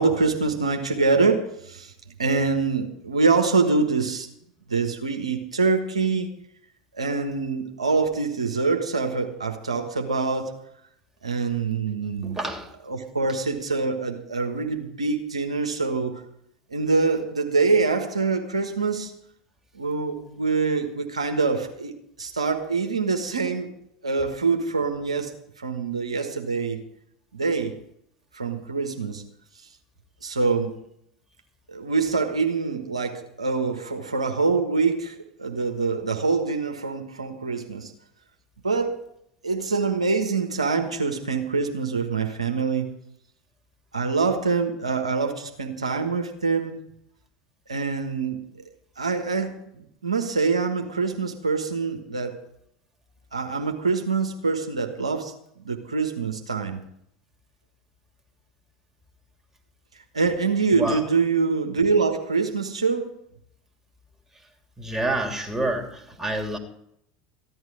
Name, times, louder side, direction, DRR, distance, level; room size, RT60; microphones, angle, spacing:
voice 1, 0.0-1.9 2.2-4.3 4.7-6.3 6.9-10.5 11.2-12.4 12.9-16.2 16.7-19.1 19.7-23.7 24.0-26.8 27.3-27.7 28.3-29.2 30.2-30.7 31.7-37.9 38.6-39.0 39.4-42.9 43.9-46.8 47.7-48.4 49.0-52.4 53.3-55.3 55.6-56.8 60.1-63.2, right 4 dB, 90° right, 4 dB, 1.3 m, -25 dB
voice 2, 12.2-12.7 60.7-61.1 64.3-64.5 64.8-66.6, right 1 dB, 10° right, 3 dB, 2.9 m, -28 dB
15.0 x 11.0 x 4.9 m, 0.74 s
hypercardioid pair, 75°, 3 cm